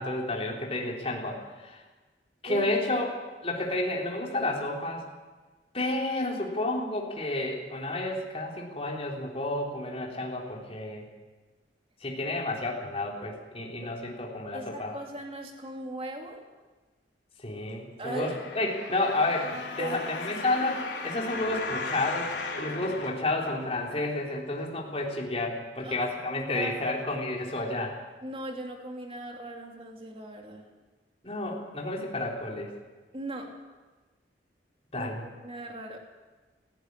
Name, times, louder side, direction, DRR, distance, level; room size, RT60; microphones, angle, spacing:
voice 1, 0.0-1.8 2.4-3.1 3.4-5.0 5.7-11.1 12.0-15.0 17.4-28.0 31.2-32.7 34.9-35.2, left 2 dB, 35° left, -1 dB, 4.1 m, -31 dB
voice 2, 14.5-16.4 18.0-18.7 19.8-20.3 25.8-26.1 26.5-27.0 28.2-30.7 33.1-33.6 34.9-36.0, right 1 dB, 35° right, 2 dB, 2.7 m, -38 dB
sound 1, 18.0-24.0 24.6-24.7, left 3 dB, 85° left, 3.5 m, -37 dB
18.0 x 15.0 x 9.9 m, 1.3 s
head